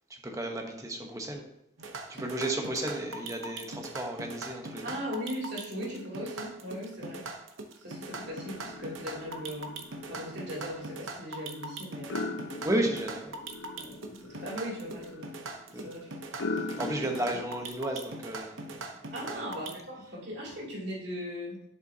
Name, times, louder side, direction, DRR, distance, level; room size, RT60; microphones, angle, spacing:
voice 1, 0.2-1.4 2.1-4.9 12.6-13.3 15.7-15.9 16.8-19.5, right 1 dB, 15° right, 2 dB, 1.0 m, -33 dB
sound 1, 1.8-19.7, right 2 dB, 80° right, 0.9 m, -41 dB
voice 2, 4.8-7.2 7.8-9.8 10.1-12.3 13.7-15.4 15.7-16.2 19.1-21.6, equal, 55° right, -5 dB, 2.9 m, -39 dB
sound 2, 8.1-17.7, left 2 dB, 60° left, 0.6 m, -41 dB
10.5 x 5.6 x 2.8 m, 0.84 s
head